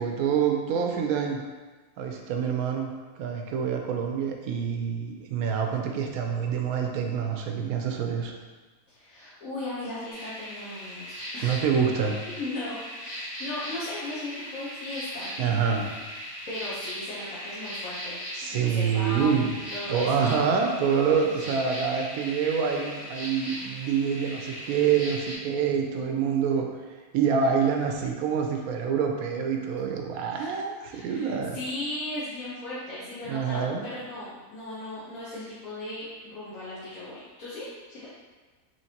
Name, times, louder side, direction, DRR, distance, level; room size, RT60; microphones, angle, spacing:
voice 1, 0.0-1.4 2.0-2.9 3.2-8.3 11.4-12.2 15.4-15.9 18.4-19.5 19.9-26.7 27.1-31.6 33.3-33.8, right 6 dB, 75° right, 2 dB, 1.0 m, -26 dB
voice 2, 8.9-11.6 12.3-15.3 16.5-18.2 18.5-20.4 21.5-21.6 30.3-30.5 30.9-38.1, left 2 dB, 65° left, -10 dB, 1.3 m, -37 dB
sound 1, 10.1-25.4, equal, 25° left, 1.1 m, -38 dB
4.4 x 3.1 x 2.8 m, 1.3 s
omnidirectional pair, 1.6 m